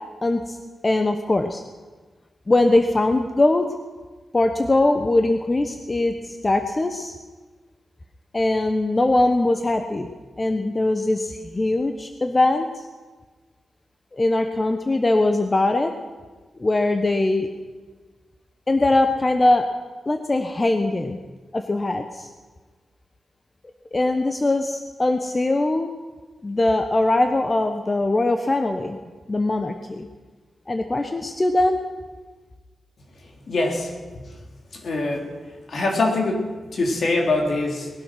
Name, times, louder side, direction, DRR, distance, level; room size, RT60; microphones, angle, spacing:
voice 1, 0.2-0.6 0.8-1.6 2.5-3.7 4.3-7.1 8.3-10.1 10.4-12.9 14.1-15.9 16.6-17.5 18.7-19.7 20.1-21.2 21.5-22.3 23.9-25.9 26.4-29.0 29.3-30.1 30.7-31.8, left 2 dB, 35° left, 6 dB, 1.2 m, -21 dB
voice 2, 33.5-33.9 34.2-34.3 34.7-35.3 35.7-37.9, left 2 dB, 65° left, 1 dB, 3.4 m, -23 dB
20.5 x 11.5 x 6.0 m, 1.4 s
cardioid pair, 50°, 0 cm